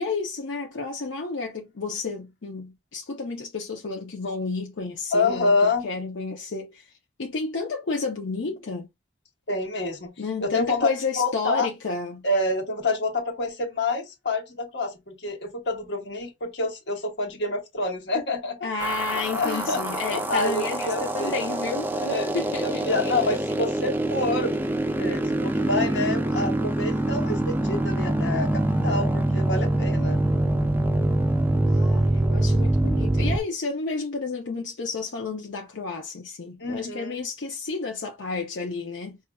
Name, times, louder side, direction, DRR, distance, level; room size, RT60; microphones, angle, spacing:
voice 1, 0.0-6.9 7.2-8.9 10.2-12.2 18.6-21.9 22.3-22.9 31.7-39.2, left 4 dB, 90° left, 0.7 m, -31 dB
voice 2, 5.1-5.9 9.5-10.1 10.4-10.9 11.2-11.7 12.2-18.9 19.3-22.3 22.6-24.6 25.0-30.2 36.6-37.2, left 2 dB, 70° left, 1.1 m, -27 dB
sound 1, 18.8-33.4, right 1 dB, 10° right, 0.3 m, -25 dB
5.5 x 2.5 x 2.3 m
head